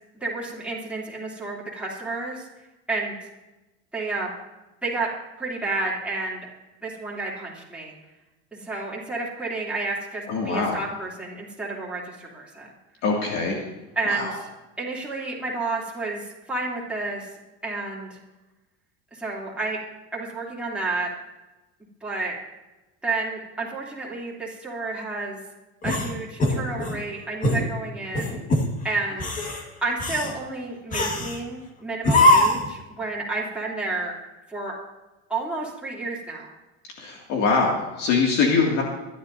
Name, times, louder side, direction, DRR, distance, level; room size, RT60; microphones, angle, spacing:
voice 1, 0.2-2.5 2.9-3.1 3.9-4.3 4.8-5.1 5.4-6.4 6.8-7.9 8.5-12.7 13.9-14.5 14.8-17.3 17.6-18.2 19.1-19.8 20.1-21.1 22.0-22.4 23.0-25.4 25.8-28.4 28.8-29.4 29.8-34.1 34.5-34.7 35.3-36.5, right 3 dB, 5° right, -5 dB, 3.0 m, -30 dB
voice 2, 10.3-10.8 13.0-13.6 14.1-14.3 37.0-38.8, left 4 dB, 55° left, -1 dB, 2.3 m, -23 dB
sound 1, 25.8-27.0 27.4-27.7 28.1-28.7 29.1-29.6 30.0-30.3 30.9-31.4 32.0-32.7, left 1 dB, 25° left, 1.7 m, -21 dB
24.0 x 11.5 x 2.7 m, 1.1 s
cardioid pair, 155°, 32 cm